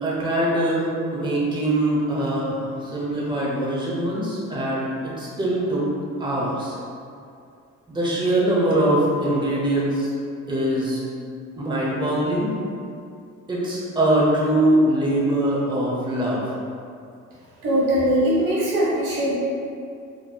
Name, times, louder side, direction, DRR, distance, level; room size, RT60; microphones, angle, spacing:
voice 1, 0.0-5.8 6.2-6.8 7.9-10.1 10.5-11.0 11.6-12.5 13.5-16.4, right 1 dB, 15° right, -5 dB, 0.8 m, -22 dB
voice 2, 17.6-19.3, right 1 dB, 90° right, -7 dB, 1.3 m, -21 dB
4.4 x 3.0 x 2.2 m, 2.4 s
cardioid pair, 90°, 30 cm